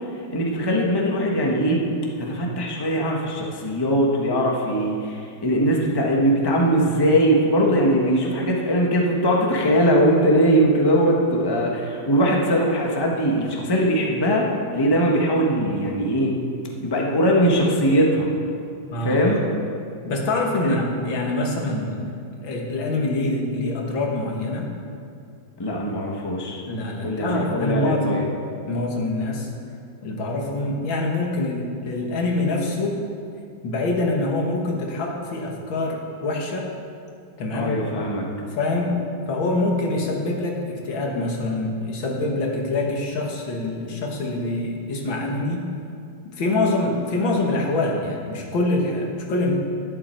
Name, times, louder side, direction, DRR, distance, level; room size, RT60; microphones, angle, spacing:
voice 1, 0.3-1.8 2.2-16.3 16.8-18.3 19.0-19.4 20.6-20.7 25.6-26.6 27.0-28.3 37.5-38.3, equal, 15° left, -1 dB, 1.0 m, -21 dB
voice 2, 18.9-19.4 20.0-22.0 22.4-24.7 26.7-28.3 28.7-29.5 30.0-33.0 33.6-36.7 37.4-37.7 38.6-39.0 39.3-45.7 46.2-49.5, left 2 dB, 75° left, 0 dB, 2.3 m, -25 dB
11.5 x 11.0 x 4.5 m, 2.4 s
omnidirectional pair, 2.1 m